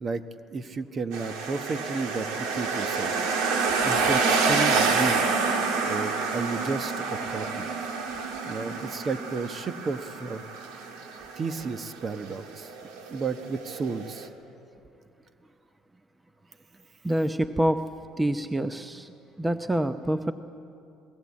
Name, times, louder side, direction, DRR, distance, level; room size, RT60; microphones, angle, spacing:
voice 1, 0.5-3.1 3.8-5.3 5.9-7.7 8.4-10.4 11.4-12.7 13.1-14.3, right 4 dB, 40° right, 10 dB, 1.1 m, -32 dB
sound 1, 1.1-14.3, right 4 dB, 80° right, 2.2 m, -28 dB
voice 2, 17.0-17.8 18.2-20.3, right 1 dB, 10° right, 10 dB, 0.8 m, -26 dB
21.0 x 17.5 x 8.5 m, 2.6 s
supercardioid pair, 85°, 0 cm